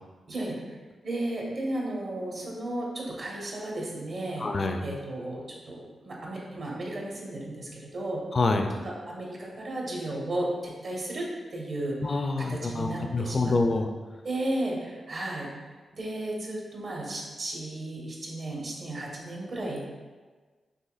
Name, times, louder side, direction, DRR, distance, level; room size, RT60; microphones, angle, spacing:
voice 1, 0.3-0.8 1.0-4.5 4.8-8.2 8.8-12.0 12.4-13.6 14.2-15.5 15.9-19.8, right 1 dB, 65° right, -3 dB, 1.2 m, -34 dB
voice 2, 4.4-4.8 8.3-8.7 12.0-13.9, left 3 dB, 50° left, 5 dB, 0.4 m, -26 dB
5.6 x 3.2 x 2.4 m, 1.4 s
cardioid pair, 60°, 0 cm